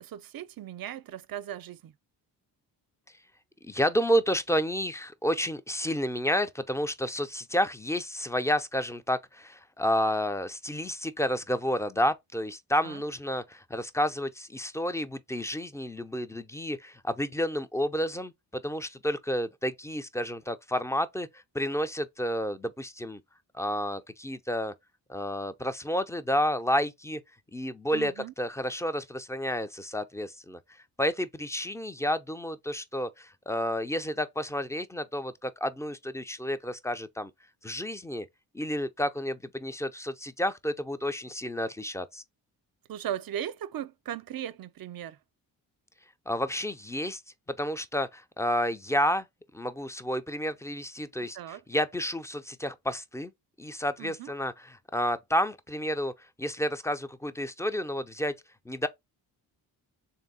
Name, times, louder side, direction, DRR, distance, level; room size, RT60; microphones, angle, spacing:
voice 1, 0.0-1.9 12.8-13.0 27.9-28.3 42.9-45.2 51.3-51.6 54.0-54.3, right 10 dB, 50° right, 0.6 m, -37 dB
voice 2, 3.6-23.2 23.5-24.7 25.1-27.2 27.5-30.6 31.0-37.3 37.6-38.3 38.5-42.2 46.3-47.2 47.5-49.3 49.5-53.3 53.6-58.3 58.7-58.9, equal, 5° left, 0.5 m, -30 dB
3.4 x 2.7 x 4.0 m
supercardioid pair, 45°, 46 cm